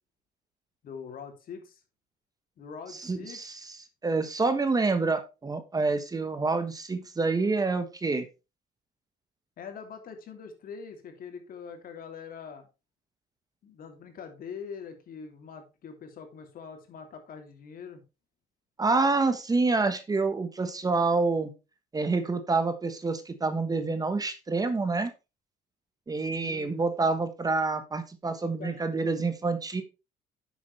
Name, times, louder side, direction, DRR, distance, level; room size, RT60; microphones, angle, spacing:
voice 1, 0.8-1.8 2.6-3.5 9.6-12.7 13.6-18.0 26.4-27.1 28.6-28.9, left 6 dB, 60° left, 5 dB, 2.9 m, -43 dB
voice 2, 3.0-3.8 4.0-8.3 18.8-21.5 21.9-25.1 26.1-29.8, right 3 dB, 20° right, 9 dB, 1.3 m, -27 dB
9.8 x 7.5 x 3.3 m, 0.28 s
cardioid pair, 110°, 17 cm